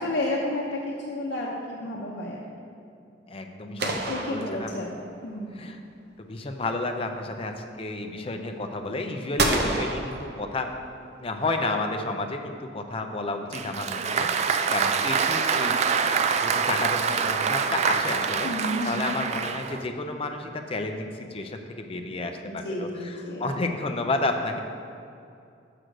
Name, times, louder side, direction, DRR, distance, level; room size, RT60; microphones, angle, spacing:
voice 1, 0.0-2.5 3.7-5.7 15.0-15.1 18.4-19.1 22.0-22.1 22.4-23.5, left 1 dB, 65° left, -4 dB, 0.8 m, -32 dB
voice 2, 3.3-4.7 5.5-5.8 6.2-10.7 11.2-15.8 16.4-18.5 18.8-24.6, left 2 dB, 30° left, 5 dB, 0.5 m, -31 dB
sound 1, 3.8-5.3 9.4-11.0, right 2 dB, 60° right, 0.7 m, -29 dB
Applause, 13.5-19.9, right 6 dB, 40° right, 0.3 m, -25 dB
6.2 x 5.0 x 6.5 m, 2.5 s
head